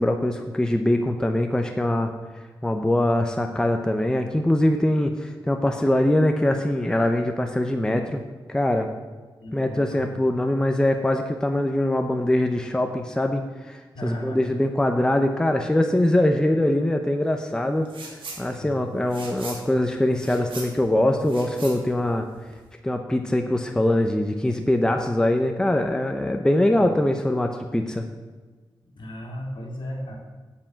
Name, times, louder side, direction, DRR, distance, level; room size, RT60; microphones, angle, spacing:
voice 1, 0.0-2.1 2.6-8.2 8.5-8.9 9.5-17.9 18.4-22.3 22.8-28.1, left 1 dB, 10° left, 4 dB, 0.7 m, -23 dB
voice 2, 9.4-10.1 13.9-14.5 18.4-18.9 26.8-27.0 28.9-30.2, equal, 65° left, -1 dB, 2.4 m, -35 dB
sound 1, 17.8-18.4 18.7-22.7, right 3 dB, 80° right, 2.3 m, -40 dB
7.8 x 7.1 x 7.3 m, 1.3 s
wide cardioid pair, 130°, 9 cm